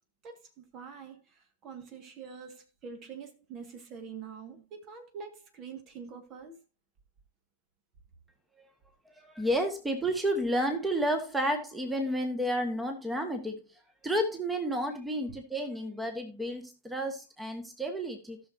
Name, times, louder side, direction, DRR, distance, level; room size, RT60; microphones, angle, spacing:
voice 1, 0.2-6.6, right 6 dB, 35° right, 1.8 m, -45 dB
voice 2, 9.1-13.6 14.0-18.4, equal, 10° right, 1.6 m, -31 dB
17.5 x 6.4 x 2.7 m
figure-of-eight pair, 90°, 0 cm